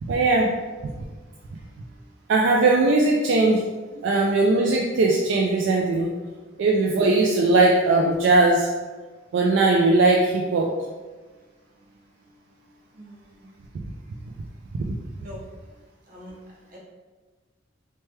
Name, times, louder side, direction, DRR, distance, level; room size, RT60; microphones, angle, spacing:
voice 1, 0.0-0.5 2.3-3.6 4.0-6.1 6.6-8.7 9.3-10.7 14.7-15.0, right 2 dB, 70° right, -1 dB, 0.3 m, -19 dB
voice 2, 12.9-13.6 15.2-15.4 16.1-16.3 16.7-16.8, equal, 45° right, -5 dB, 0.8 m, -44 dB
3.2 x 2.2 x 3.0 m, 1.3 s
head